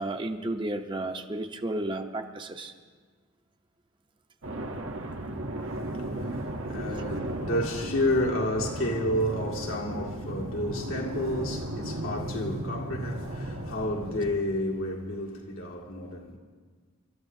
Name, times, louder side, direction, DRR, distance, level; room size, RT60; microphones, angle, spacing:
voice 1, 0.0-2.7, right 1 dB, 25° right, 0.6 m, -32 dB
sound 1, 4.4-14.4, right 1 dB, 75° right, 1.1 m, -35 dB
voice 2, 5.7-16.4, left 1 dB, 80° left, 1.9 m, -31 dB
29.5 x 13.0 x 2.7 m
head